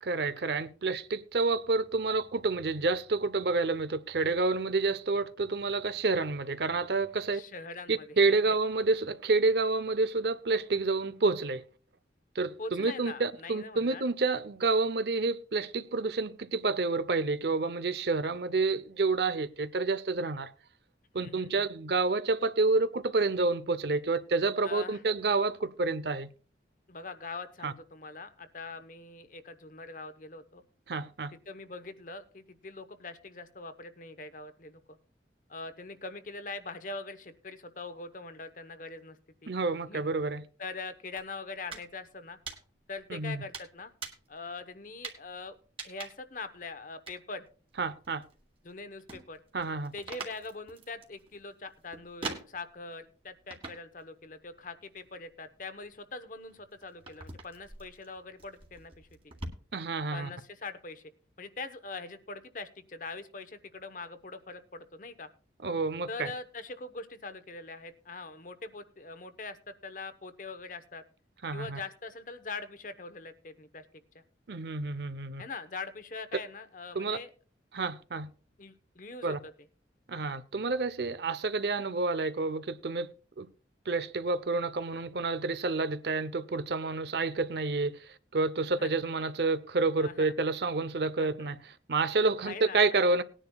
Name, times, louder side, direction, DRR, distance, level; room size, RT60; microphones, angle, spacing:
voice 1, 0.0-7.4 7.9-11.6 12.3-20.5 21.1-26.3 27.6-27.7 30.9-31.3 39.5-40.4 43.1-43.4 47.8-48.3 49.5-49.9 59.7-60.3 65.6-66.3 71.4-71.8 74.5-75.4 76.9-77.2 77.7-78.3 79.2-79.4 80.1-83.5 83.9-93.2, right 3 dB, 65° right, 0.7 m, -29 dB
voice 2, 7.3-8.0 8.5-8.6 12.6-14.1 21.2-21.7 24.6-25.0 26.9-30.6 31.5-34.8 35.5-39.2 39.4-39.5 39.9-40.1 40.6-42.4 42.9-43.9 44.3-45.6 45.8-47.5 48.6-49.4 49.9-59.1 60.1-61.0 61.4-65.3 66.1-71.0 71.5-73.9 74.1-74.2 75.4-77.3 78.6-79.5 88.8-88.9 90.0-90.3 91.2-91.5 92.4-92.8, left 3 dB, 45° left, 0.9 m, -42 dB
sound 1, 41.2-41.9 42.2-43.0 43.5-44.3 45.0-45.3 45.8-46.4 47.1-47.2 47.7-48.7 49.0-52.9 53.5-54.0 54.3-55.0 55.6-59.5, right 3 dB, 30° right, 1.9 m, -43 dB
19.5 x 10.0 x 2.3 m
head